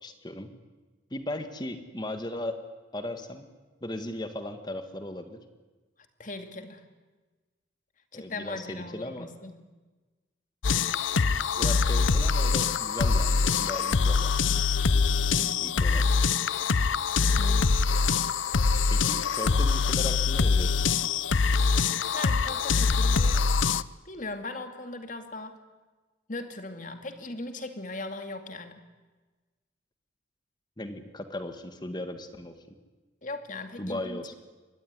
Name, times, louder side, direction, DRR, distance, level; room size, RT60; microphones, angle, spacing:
voice 1, 0.0-0.5 1.1-2.6 2.9-3.5 3.8-5.4 8.1-9.3 11.6-14.3 15.6-16.1 18.9-20.9 30.8-32.8 33.8-34.3, left 1 dB, 20° left, 8 dB, 1.9 m, -37 dB
voice 2, 6.2-6.8 8.1-9.5 15.3-15.9 17.4-18.0 21.7-23.4 24.0-25.6 26.3-28.7 33.2-34.3, left 2 dB, 40° left, 7 dB, 2.4 m, -39 dB
sound 1, 10.6-23.8, left 5 dB, 85° left, 0.7 m, -24 dB
24.5 x 19.5 x 9.7 m, 1.3 s
head